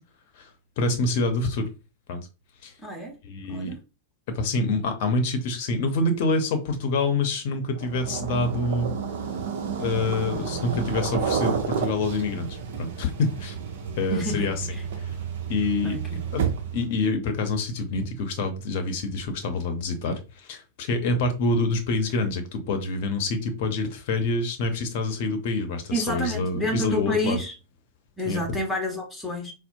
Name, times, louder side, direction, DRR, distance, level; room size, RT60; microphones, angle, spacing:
voice 1, 0.8-1.7 2.1-2.2 2.6-2.7 3.2-3.8 4.3-8.9 9.8-13.5 14.0-14.6 15.5-16.0 16.3-16.4 16.7-27.4 28.2-28.4, left 3 dB, 50° left, 0.7 m, -26 dB
voice 2, 2.8-3.2 3.5-3.8 14.1-14.8 15.8-16.2 25.9-27.5 28.2-29.5, equal, 10° left, 1.2 m, -29 dB
sound 1, 7.8-16.9, right 6 dB, 55° right, 0.7 m, -30 dB
4.1 x 2.0 x 2.6 m
figure-of-eight pair, 95°, 0 cm